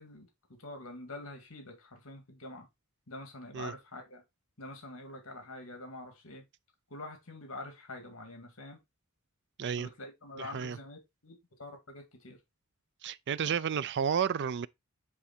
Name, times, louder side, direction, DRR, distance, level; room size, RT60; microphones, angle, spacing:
voice 1, 0.0-2.7 3.1-4.2 4.6-6.5 6.9-8.8 9.8-12.4, left 2 dB, 65° left, 2.2 m, -46 dB
voice 2, 10.4-10.8 13.0-14.7, right 7 dB, 55° right, 0.4 m, -31 dB
9.7 x 3.4 x 4.4 m
head